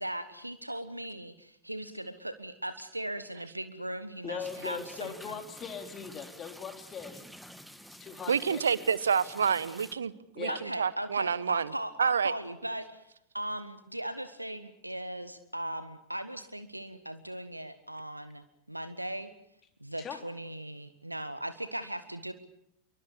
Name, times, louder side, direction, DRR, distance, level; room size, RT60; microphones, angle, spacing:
voice 1, 0.0-5.4 10.5-13.0 13.3-19.3 19.8-22.3, right 1 dB, 85° right, 12 dB, 1.3 m, -38 dB
voice 2, 4.2-7.2 8.0-8.9 10.4-10.6 20.0-20.2, left 6 dB, 25° left, 5 dB, 3.6 m, -40 dB
sound 1, 4.4-9.9, equal, ahead, 1.6 m, -50 dB
voice 3, 8.3-11.7 12.0-12.3, right 6 dB, 70° right, 20 dB, 1.0 m, -28 dB
27.0 x 23.5 x 6.8 m, 0.78 s
figure-of-eight pair, 90°, 0 cm